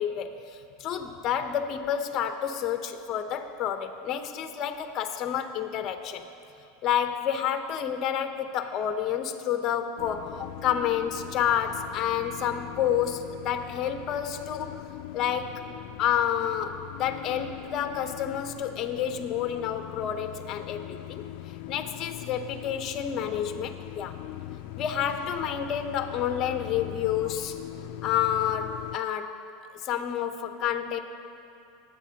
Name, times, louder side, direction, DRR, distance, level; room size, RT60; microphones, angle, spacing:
voice 1, 0.0-6.2 6.8-14.8 15.1-15.6 16.0-21.2 21.7-24.2 24.7-27.6 28.0-29.4 29.7-31.0, left 9 dB, 40° left, 7 dB, 0.8 m, -29 dB
sound 1, 10.0-29.0, left 14 dB, 60° left, 0.4 m, -41 dB
20.0 x 8.4 x 2.9 m, 2.8 s
supercardioid pair, 140°, 0 cm